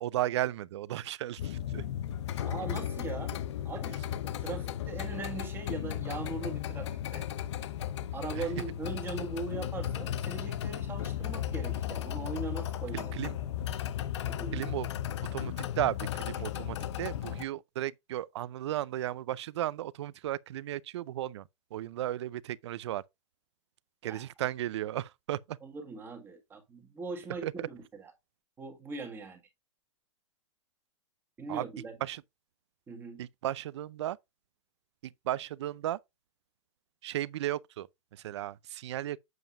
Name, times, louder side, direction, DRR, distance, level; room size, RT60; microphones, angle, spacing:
voice 1, 0.0-1.8 8.4-8.5 12.9-13.4 14.5-14.9 15.3-23.0 24.0-25.6 27.4-27.7 31.5-31.6 32.0-32.2 33.2-34.2 35.0-36.0 37.0-37.9 38.1-39.2, right 13 dB, 60° right, 0.5 m, -35 dB
sound 1, 1.4-17.4, left 10 dB, 60° left, 0.8 m, -35 dB
voice 2, 2.4-3.4 3.6-7.3 8.1-13.2 14.2-14.7 24.0-24.3 25.6-28.1 28.6-29.4 31.4-32.0 32.9-33.2, right 4 dB, 15° right, 1.6 m, -40 dB
7.7 x 7.1 x 2.5 m
hypercardioid pair, 150°, 16 cm